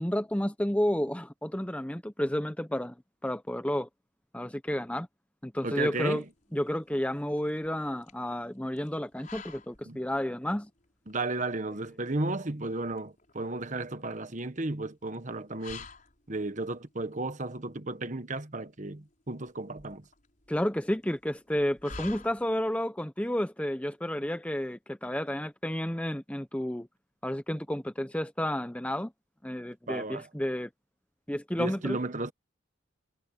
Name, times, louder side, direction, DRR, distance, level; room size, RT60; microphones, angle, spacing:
voice 1, 0.0-2.9 3.2-3.9 4.3-5.1 5.4-6.2 6.5-10.7 20.5-26.9 27.2-29.1 29.4-30.7 31.3-32.0, equal, 5° left, 0.8 m, -31 dB
voice 2, 5.6-6.3 9.9-10.0 11.1-15.9 16.3-20.0 29.9-30.3 31.6-32.3, right 2 dB, 40° right, 1.2 m, -34 dB
sound 1, 5.8-22.8, left 4 dB, 40° left, 6.0 m, -51 dB
head